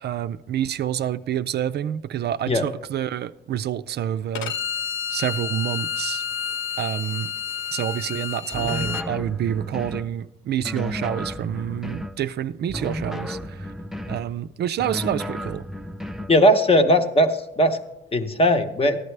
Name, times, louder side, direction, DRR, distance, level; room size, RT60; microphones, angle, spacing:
voice 1, 0.0-4.5 5.1-6.3 6.8-7.3 7.7-13.7 14.1-15.7, right 10 dB, 55° right, 0.4 m, -28 dB
Bowed string instrument, 4.4-9.1, left 8 dB, 75° left, 0.4 m, -30 dB
sound 1, 8.5-10.1 10.6-12.2 12.7-14.3 14.8-16.4, left 1 dB, ahead, 0.5 m, -33 dB
voice 2, 16.3-17.8 18.1-19.0, equal, 30° left, 0.9 m, -18 dB
14.0 x 10.5 x 3.3 m
cardioid pair, 90°, 20 cm